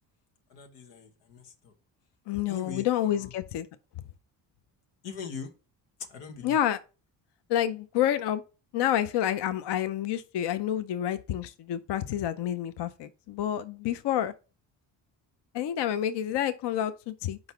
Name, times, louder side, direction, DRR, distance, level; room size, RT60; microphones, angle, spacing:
voice 1, 0.5-1.7 2.5-2.8 5.0-5.5 6.1-6.6, left 6 dB, 90° left, 1.2 m, -41 dB
voice 2, 2.3-3.7 6.4-6.8 7.5-8.4 8.7-14.3 15.5-17.4, left 11 dB, 55° left, 0.6 m, -28 dB
4.8 x 4.0 x 5.6 m
supercardioid pair, 60°, 49 cm